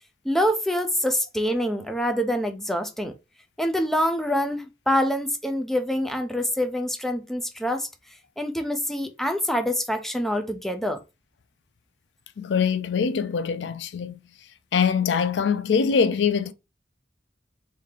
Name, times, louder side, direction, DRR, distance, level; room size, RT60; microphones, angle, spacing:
voice 1, 0.2-3.1 3.6-7.9 8.4-11.0, equal, ahead, 0.4 m, -25 dB
voice 2, 12.4-14.2 14.7-16.5, left 6 dB, 85° left, 0.4 m, -23 dB
3.1 x 2.7 x 3.8 m
head